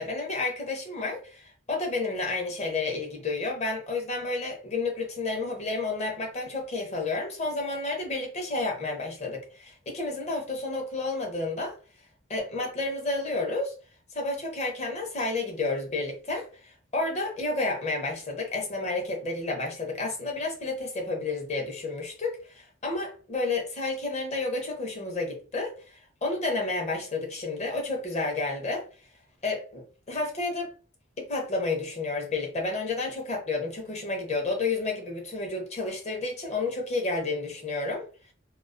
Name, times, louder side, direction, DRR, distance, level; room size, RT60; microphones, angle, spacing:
voice 1, 0.0-11.8 12.3-13.7 14.1-28.8 29.4-30.7 31.2-38.0, left 3 dB, 35° left, 0.7 m, -31 dB
2.3 x 2.3 x 2.4 m
head